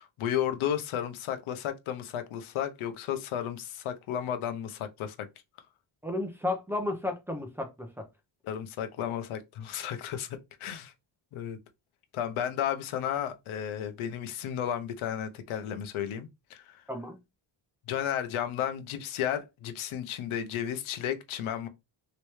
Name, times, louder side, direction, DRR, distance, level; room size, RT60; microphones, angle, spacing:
voice 1, 0.0-5.3 8.4-10.9 11.3-11.6 12.1-16.8 17.9-21.7, left 10 dB, 85° left, 0.7 m, -33 dB
voice 2, 6.0-8.1 16.9-17.2, left 2 dB, 5° right, 0.6 m, -33 dB
3.2 x 2.9 x 3.1 m
wide cardioid pair, 165°, 47 cm